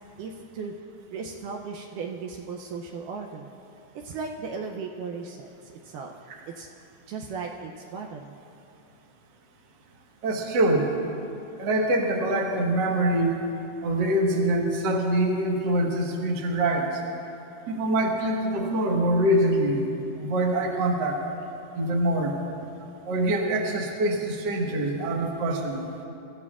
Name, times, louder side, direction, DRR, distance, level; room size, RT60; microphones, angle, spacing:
voice 1, 0.2-0.7 1.1-3.5 4.0-5.5 5.8-6.1 6.5-6.7 7.1-8.4, right 5 dB, 80° right, 1 dB, 2.0 m, -36 dB
voice 2, 10.2-10.9 11.6-13.3 13.8-17.0 17.7-19.8 20.2-21.2 21.7-22.4 23.0-25.9, right 1 dB, 60° right, 0 dB, 1.2 m, -24 dB
24.5 x 14.0 x 2.4 m, 2.7 s
omnidirectional pair, 4.2 m